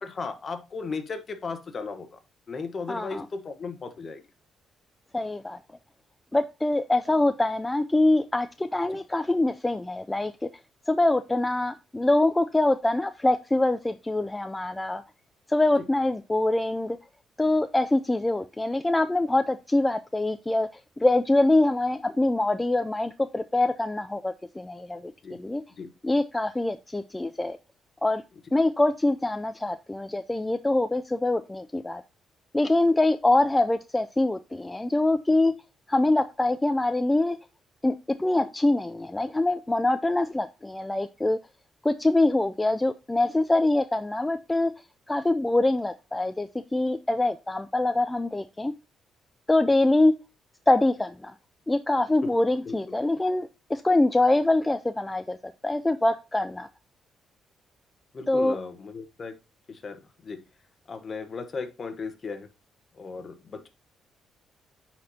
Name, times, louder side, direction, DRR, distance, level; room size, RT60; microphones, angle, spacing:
voice 1, 0.0-2.2 2.5-4.2 8.9-9.0 15.8-15.9 25.2-25.4 25.8-25.9 52.2-52.3 52.6-53.0 58.1-59.3 59.7-60.4 60.9-62.5 62.9-63.7, left 4 dB, 40° left, 8 dB, 1.1 m, -36 dB
voice 2, 2.9-3.2 5.1-5.6 6.3-10.5 10.9-15.0 15.5-17.0 17.4-20.7 21.0-25.6 26.0-27.6 28.0-28.2 28.5-32.0 32.5-35.5 35.9-37.4 37.8-41.4 41.8-44.7 45.1-48.7 49.5-50.1 50.7-51.4 51.7-56.7 58.3-58.6, left 2 dB, 15° left, 10 dB, 0.3 m, -24 dB
9.4 x 4.2 x 2.7 m, 0.29 s
cardioid pair, 90°, 0 cm